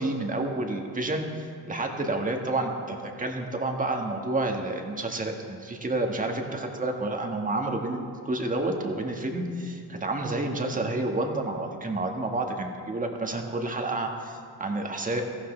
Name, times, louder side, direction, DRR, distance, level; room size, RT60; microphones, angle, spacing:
voice 1, 0.0-15.2, right 2 dB, 20° right, 3 dB, 1.6 m, -29 dB
18.0 x 14.5 x 3.3 m, 2.2 s
cardioid pair, 110°, 43 cm